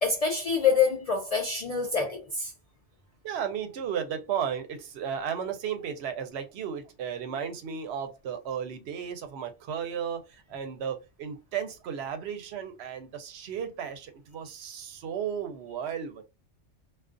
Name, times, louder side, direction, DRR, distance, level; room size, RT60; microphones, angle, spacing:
voice 1, 0.0-2.5, left 5 dB, 80° left, 0.3 m, -26 dB
voice 2, 3.2-16.2, right 8 dB, 65° right, 0.8 m, -34 dB
2.4 x 2.3 x 2.4 m
omnidirectional pair, 1.3 m